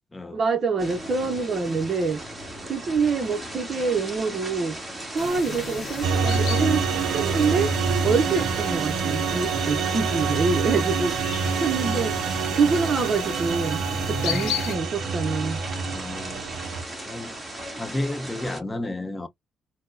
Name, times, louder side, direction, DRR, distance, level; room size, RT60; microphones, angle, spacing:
voice 1, 0.3-2.2 2.6-4.8 5.1-7.7 8.0-11.2 11.6-12.1 12.5-13.8 14.1-15.6, right 4 dB, 45° right, 0.7 m, -25 dB
sound 1, 0.8-18.6, right 1 dB, 20° right, 1.6 m, -37 dB
sound 2, 5.2-14.8, left 8 dB, 80° left, 1.0 m, -36 dB
sound 3, 6.0-16.8, right 5 dB, 75° right, 0.4 m, -26 dB
voice 2, 13.9-14.5 15.8-16.5 17.1-17.4 17.8-19.3, left 1 dB, 20° left, 0.7 m, -32 dB
4.0 x 2.1 x 2.5 m
cardioid pair, 90°, 0 cm